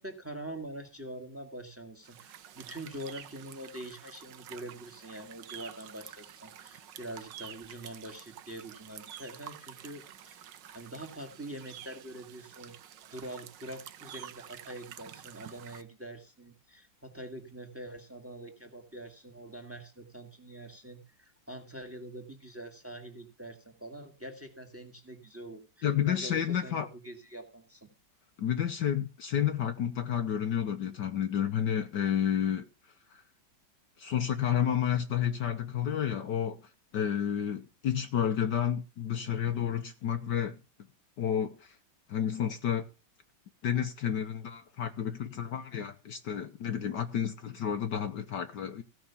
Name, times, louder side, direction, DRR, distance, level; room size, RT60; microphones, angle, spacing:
voice 1, 0.0-10.4 10.7-12.8 13.1-27.9, right 1 dB, 5° right, 1.9 m, -44 dB
sound 1, 2.0-15.8, right 10 dB, 65° right, 1.4 m, -49 dB
voice 2, 25.8-26.9 28.4-32.7 33.1-33.2 34.0-36.6 36.9-40.6 41.2-41.7 42.1-42.9 43.6-48.8, left 9 dB, 65° left, 1.3 m, -30 dB
16.0 x 5.9 x 7.0 m
omnidirectional pair, 2.3 m